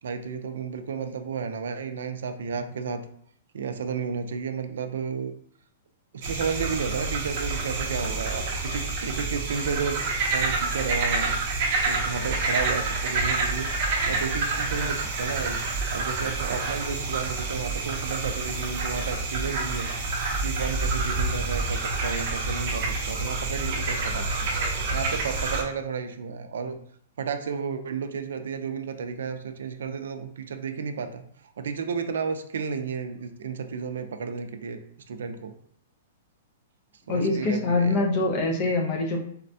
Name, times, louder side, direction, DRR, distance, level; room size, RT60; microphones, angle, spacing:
voice 1, 0.0-3.1 3.5-5.3 6.1-10.0 10.3-11.4 11.9-13.7 14.1-24.3 24.7-26.8 27.2-31.2 31.6-34.8 35.1-35.5 37.1-38.0, right 5 dB, 85° right, 7 dB, 0.4 m, -32 dB
sound 1, 6.2-25.6, right 3 dB, 35° right, 0.6 m, -28 dB
voice 2, 37.1-39.2, left 2 dB, 25° left, 1 dB, 0.5 m, -24 dB
4.1 x 2.2 x 2.6 m, 0.63 s
hypercardioid pair, 180°, 0 cm